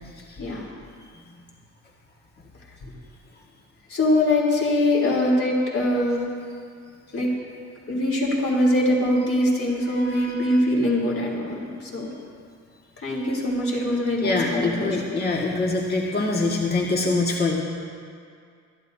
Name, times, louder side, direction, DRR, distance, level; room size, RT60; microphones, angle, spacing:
voice 1, 0.4-0.7 2.8-2.9 3.9-6.2 7.1-7.3 7.9-12.1 13.0-15.2, left 1 dB, 50° left, -3 dB, 3.4 m, -23 dB
voice 2, 9.9-10.5 14.2-17.6, left 2 dB, 30° left, -2 dB, 1.8 m, -24 dB
23.5 x 13.0 x 2.8 m, 2.2 s
cardioid pair, 90°, 30 cm